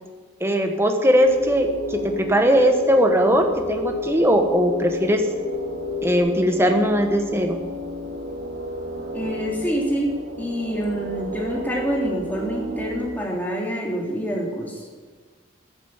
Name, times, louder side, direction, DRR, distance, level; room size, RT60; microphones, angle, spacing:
voice 1, 0.4-5.2 6.0-7.6, equal, 10° right, 4 dB, 1.3 m, -19 dB
sound 1, 0.6-6.2, left 2 dB, 30° left, 3.0 m, -31 dB
sound 2, 1.2-13.1, equal, 85° right, 2.4 m, -33 dB
voice 2, 9.1-15.1, equal, 10° left, -2 dB, 2.8 m, -27 dB
14.5 x 10.5 x 7.3 m, 1.4 s
head